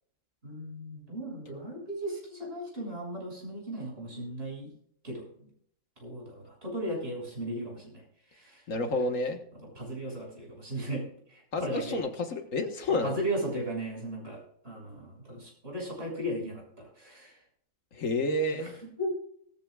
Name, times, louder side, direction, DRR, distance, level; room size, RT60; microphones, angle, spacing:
voice 1, 0.4-4.7 5.0-5.3 6.0-8.0 8.3-8.6 9.7-12.0 13.0-17.4 18.6-18.7 19.0-19.1, right 1 dB, 50° right, -2 dB, 7.0 m, -36 dB
voice 2, 8.7-9.4 11.5-13.2 17.9-18.7, left 2 dB, 80° left, 5 dB, 1.8 m, -29 dB
18.5 x 13.5 x 2.4 m, 0.65 s
omnidirectional pair, 1.3 m